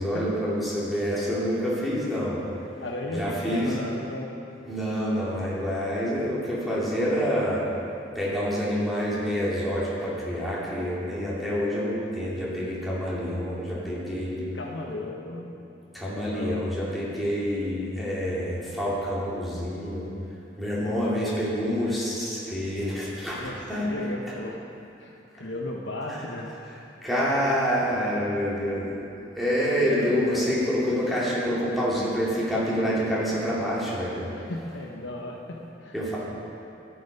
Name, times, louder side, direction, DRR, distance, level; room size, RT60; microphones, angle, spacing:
voice 1, 0.0-2.4 3.1-3.7 4.6-7.6 8.1-14.4 15.9-20.1 20.6-23.9 26.1-26.2 27.0-29.1 29.4-34.3 35.9-36.2, equal, ahead, -8 dB, 2.7 m, -27 dB
voice 2, 2.8-4.4 5.7-5.8 14.5-15.5 16.3-16.6 23.4-24.6 25.0-26.5 29.7-30.5 34.3-36.2, left 1 dB, 70° left, 0 dB, 1.1 m, -35 dB
13.0 x 7.9 x 5.4 m, 2.9 s
head